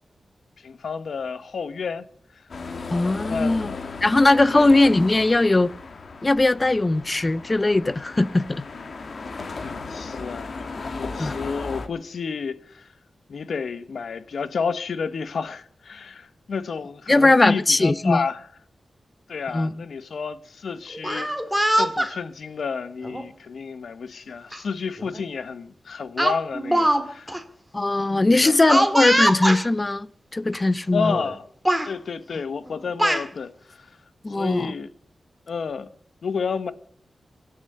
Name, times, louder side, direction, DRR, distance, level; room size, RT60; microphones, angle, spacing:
voice 1, 0.6-2.0 2.8-4.0 4.5-4.7 9.6-10.6 10.9-12.9 13.3-18.5 19.3-21.3 21.7-27.4 28.0-28.8 30.9-31.4 31.9-33.9 34.3-34.9 35.5-35.9 36.2-36.7, left 5 dB, 75° left, 1.1 m, -30 dB
sound 1, 2.5-11.9, left 4 dB, 55° left, 1.8 m, -36 dB
voice 2, 2.9-3.7 4.0-5.7 6.2-8.6 11.2-11.3 17.1-18.2 19.5-19.7 27.7-30.1 30.3-31.2 34.2-34.7, left 2 dB, 25° left, 0.6 m, -19 dB
Speech, 20.9-22.1 23.0-23.3 24.5-24.6 25.0-25.2 26.2-27.0 27.3-27.4 28.7-29.6 30.5-30.6 31.0-31.3 31.6-31.9 32.7-33.2, right 1 dB, 5° right, 1.9 m, -22 dB
24.5 x 8.6 x 6.6 m
wide cardioid pair, 120°, 0 cm